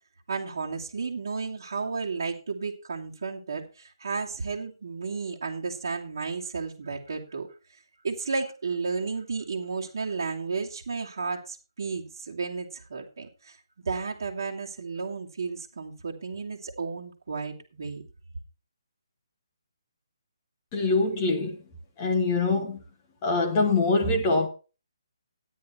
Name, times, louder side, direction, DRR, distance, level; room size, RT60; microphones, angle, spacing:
voice 1, 0.3-7.5 8.0-13.6 13.8-18.0, right 4 dB, 40° right, 2.4 m, -33 dB
voice 2, 20.7-21.6 22.0-22.8 23.2-24.5, left 3 dB, 15° left, 1.2 m, -24 dB
12.5 x 9.9 x 4.3 m
hypercardioid pair, 180°, 3 cm